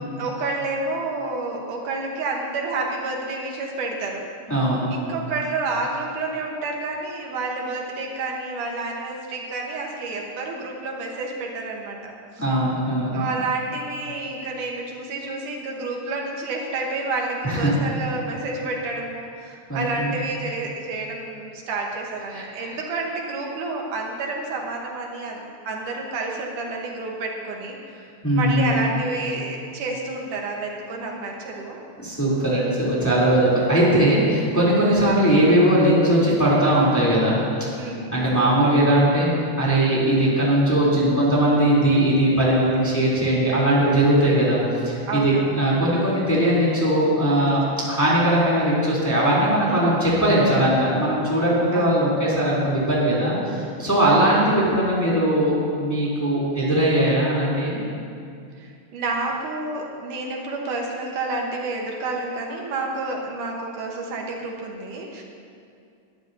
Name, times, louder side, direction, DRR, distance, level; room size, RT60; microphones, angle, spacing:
voice 1, 0.2-4.2 4.9-12.5 13.1-28.1 28.3-31.8 34.5-34.7 37.8-38.4 45.1-45.6 49.7-50.0 51.7-52.0 54.0-54.5 58.6-65.2, right 3 dB, 75° right, 0 dB, 2.7 m, -29 dB
voice 2, 4.5-4.9 12.4-13.2 17.4-17.7 19.7-20.1 22.3-22.7 28.2-28.8 32.0-37.4 38.1-39.3 39.6-47.6 47.9-57.8, right 1 dB, 5° left, -7 dB, 2.7 m, -20 dB
20.5 x 12.0 x 2.7 m, 2.4 s
omnidirectional pair, 3.7 m